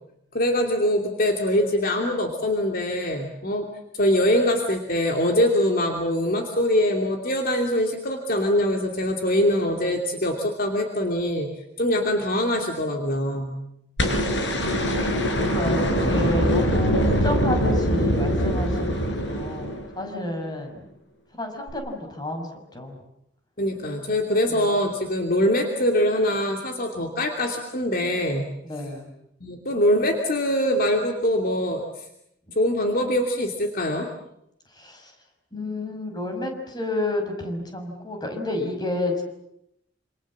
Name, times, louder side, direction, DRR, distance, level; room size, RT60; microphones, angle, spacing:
voice 1, 0.3-3.7 3.9-13.6 23.6-28.5 29.4-31.8 32.5-34.1, left 1 dB, 50° left, 3 dB, 2.8 m, -23 dB
sound 1, 14.0-20.2 21.7-21.8, equal, 75° left, 6.0 m, -23 dB
voice 2, 14.7-20.9 21.4-23.0 24.5-24.7 28.6-29.1 34.7-35.1 35.5-39.2, left 1 dB, 25° left, 4 dB, 5.9 m, -31 dB
27.5 x 27.5 x 7.5 m, 0.78 s
head